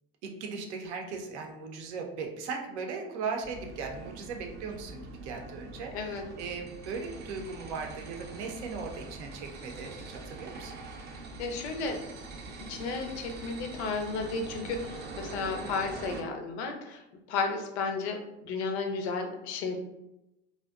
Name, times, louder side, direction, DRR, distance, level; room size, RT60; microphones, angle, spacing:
voice 1, 0.2-10.7, right 4 dB, 85° right, 2 dB, 0.5 m, -38 dB
sound 1, 3.4-16.2, right 3 dB, 30° right, 0.4 m, -44 dB
voice 2, 11.4-12.0 12.7-17.0 17.3-18.2 18.4-19.8, left 4 dB, 80° left, 4 dB, 0.5 m, -33 dB
2.5 x 2.1 x 2.3 m, 0.93 s
hypercardioid pair, 80°, 33 cm